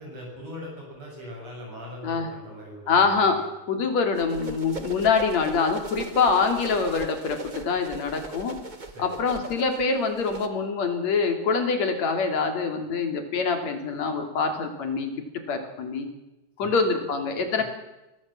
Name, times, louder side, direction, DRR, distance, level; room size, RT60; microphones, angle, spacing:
voice 1, 0.0-3.5 8.9-9.4 16.6-16.8 17.6-17.7, left 1 dB, 55° right, -2 dB, 7.7 m, -41 dB
voice 2, 2.9-3.4 3.7-8.6 9.0-15.1 15.5-16.1 16.6-17.6, left 5 dB, 60° left, 6 dB, 4.0 m, -25 dB
sound 1, 4.2-10.5, right 2 dB, 35° right, 0.7 m, -38 dB
23.5 x 17.0 x 7.6 m, 0.98 s
omnidirectional pair, 3.6 m